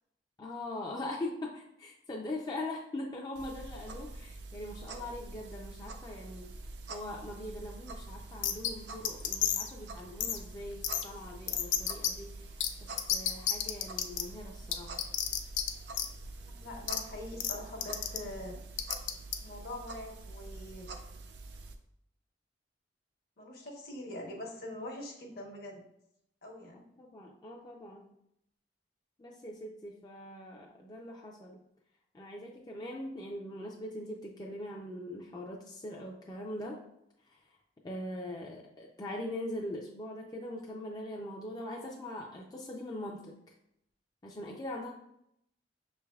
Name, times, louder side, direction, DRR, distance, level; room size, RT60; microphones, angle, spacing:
voice 1, 0.4-6.5 6.9-15.0 26.7-28.1 29.2-31.6 32.1-36.8 37.3-37.6 37.8-43.4 44.2-44.9, left 1 dB, 20° left, -2 dB, 0.4 m, -42 dB
sound 1, 3.4-21.8, right 2 dB, 70° right, 0.4 m, -46 dB
sound 2, 8.4-8.7 9.0-9.7 10.2-10.4 10.8-11.0 11.5-12.1 12.6-12.7 13.0-14.2 14.7-15.7 15.9-16.1 16.9-17.0 17.4-17.5 17.8-18.2 18.8-19.3, left 10 dB, 90° left, 0.4 m, -30 dB
voice 2, 16.4-18.6 19.4-20.9 23.4-25.8 26.4-26.8, left 1 dB, 60° left, 0 dB, 0.9 m, -43 dB
5.9 x 3.3 x 2.3 m, 0.77 s
head